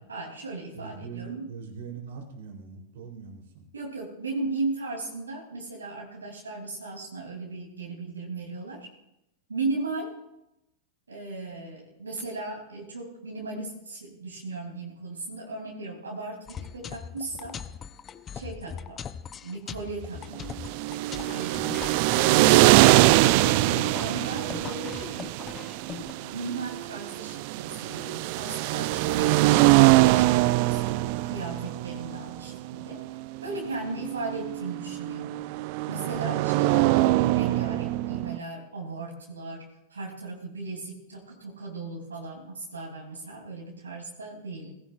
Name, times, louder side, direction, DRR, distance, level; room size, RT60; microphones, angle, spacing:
voice 1, 0.0-1.5 3.7-8.9 9.5-10.2 11.1-17.6 18.3-19.0 19.4-20.6 21.3-21.8 22.0-25.2 26.0-33.0 33.4-35.5 35.9-44.7, right 3 dB, 85° right, -1 dB, 3.0 m, -36 dB
voice 2, 0.7-3.6, right 6 dB, 70° right, 2 dB, 3.4 m, -41 dB
sound 1, 16.5-26.1, left 7 dB, 30° left, 0.7 m, -40 dB
sound 2, 20.5-38.4, right 19 dB, 55° right, 0.4 m, -23 dB
19.5 x 16.0 x 2.5 m, 0.83 s
hypercardioid pair, 95°, 0 cm